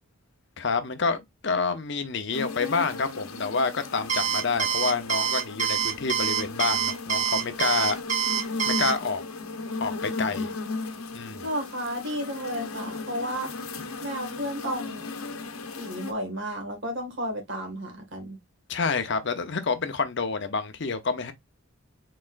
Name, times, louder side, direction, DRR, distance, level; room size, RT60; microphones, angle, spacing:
voice 1, 0.6-8.0 8.7-9.2 9.8-10.5 11.1-11.5 18.7-21.3, left 4 dB, 55° left, 0.7 m, -28 dB
sound 1, 2.3-16.1, left 3 dB, 80° left, 1.0 m, -36 dB
Alarm, 4.1-8.9, right 8 dB, 35° right, 0.8 m, -25 dB
voice 2, 11.4-13.5 14.0-15.1 15.8-18.4, equal, 55° right, 1.9 m, -32 dB
4.3 x 4.2 x 2.5 m
head